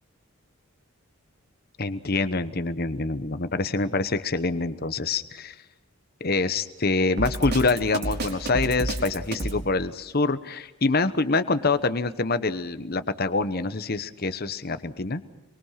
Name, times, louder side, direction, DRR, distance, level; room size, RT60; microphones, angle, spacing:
voice 1, 1.8-5.5 6.2-15.2, left 3 dB, 45° left, 12 dB, 1.0 m, -26 dB
Drum kit, 7.2-9.6, right 2 dB, 50° right, 4.2 m, -29 dB
24.0 x 23.5 x 5.8 m, 0.99 s
head